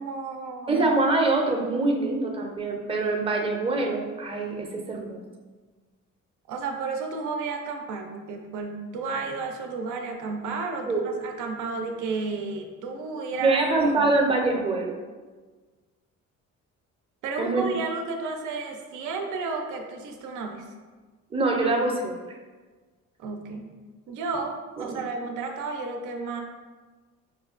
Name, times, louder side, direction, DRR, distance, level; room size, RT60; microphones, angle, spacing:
voice 1, 0.0-0.8 6.5-13.6 14.0-14.1 17.2-20.6 23.2-23.7 24.1-26.4, right 4 dB, 80° right, 3 dB, 0.5 m, -32 dB
voice 2, 0.7-5.2 10.9-11.0 13.4-14.9 17.4-17.7 21.3-22.2 24.8-25.0, right 3 dB, 20° right, 0 dB, 0.5 m, -24 dB
5.0 x 2.2 x 2.4 m, 1.4 s
cardioid pair, 90°, 30 cm